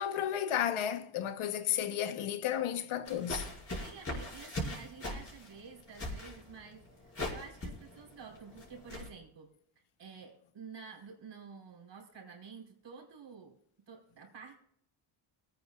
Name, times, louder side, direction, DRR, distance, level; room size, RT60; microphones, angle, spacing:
voice 1, 0.0-3.4, left 10 dB, 80° left, 1.2 m, -33 dB
sound 1, 3.0-9.1, left 1 dB, 30° left, 5.5 m, -41 dB
voice 2, 3.8-9.5 10.0-13.6 13.9-14.6, right 5 dB, 60° right, 5.2 m, -50 dB
22.5 x 9.6 x 2.4 m
cardioid pair, 95°, 49 cm